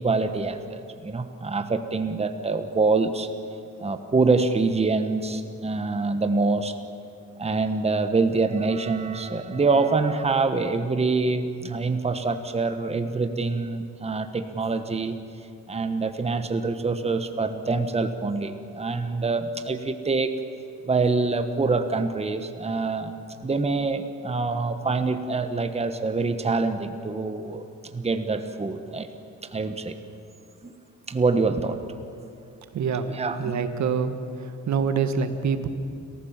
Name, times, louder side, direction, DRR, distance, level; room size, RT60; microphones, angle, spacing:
voice 1, 0.0-3.3 3.8-6.7 7.4-15.2 15.7-20.3 20.8-23.1 23.4-27.6 27.9-29.1 29.4-30.0 30.6-30.7 31.1-31.8 33.1-33.5, right 3 dB, 20° right, 8 dB, 1.3 m, -25 dB
voice 2, 32.7-33.1 33.4-34.1 34.4-35.7, right 6 dB, 65° right, 9 dB, 1.8 m, -25 dB
29.5 x 15.0 x 7.4 m, 2.5 s
cardioid pair, 90°, 30 cm